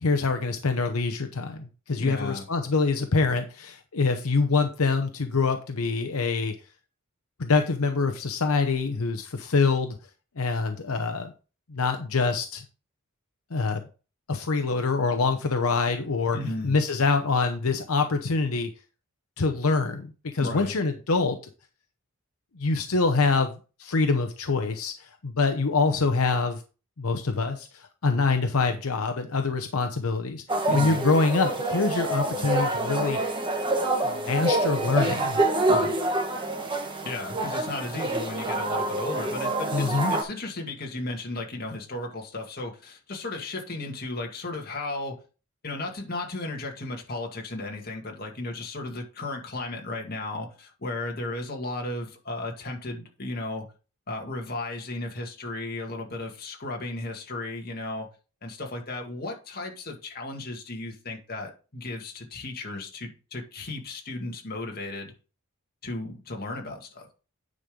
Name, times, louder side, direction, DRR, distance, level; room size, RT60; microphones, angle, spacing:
voice 1, 0.0-6.5 7.4-10.0 10.4-11.3 11.7-12.6 13.5-13.8 14.3-16.4 16.6-18.7 19.4-21.4 22.6-26.6 27.0-30.4 30.7-33.2 34.0-35.4 39.7-40.1, left 4 dB, 80° left, 6 dB, 0.8 m, -25 dB
voice 2, 2.0-2.5 16.3-16.8 20.4-20.7 30.7-31.0 35.7-35.9 37.0-45.2 45.6-53.7 54.1-58.1 58.4-65.1 65.8-67.1, left 2 dB, 45° left, 1 dB, 2.1 m, -35 dB
sound 1, 30.5-40.2, right 2 dB, 20° right, 1.4 m, -27 dB
9.6 x 5.2 x 3.8 m, 0.33 s
head